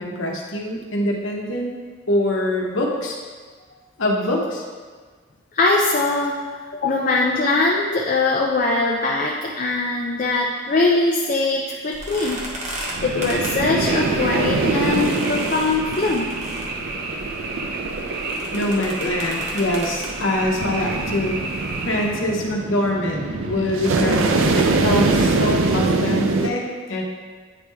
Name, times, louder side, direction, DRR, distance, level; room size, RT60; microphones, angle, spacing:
voice 1, 0.0-1.7 2.1-3.2 4.0-4.6 18.5-21.4 21.8-27.0, left 1 dB, 75° left, 0 dB, 0.9 m, -24 dB
voice 2, 5.5-6.4 6.7-12.4 13.0-16.3, left 3 dB, 40° left, -1 dB, 0.4 m, -21 dB
sound 1, 11.9-22.1, right 1 dB, 35° right, 1.0 m, -36 dB
Frog, 12.8-22.2, right 3 dB, 50° right, 0.7 m, -32 dB
sound 2, 13.0-26.5, right 3 dB, 90° right, 0.5 m, -24 dB
9.4 x 3.2 x 3.4 m, 1.5 s
head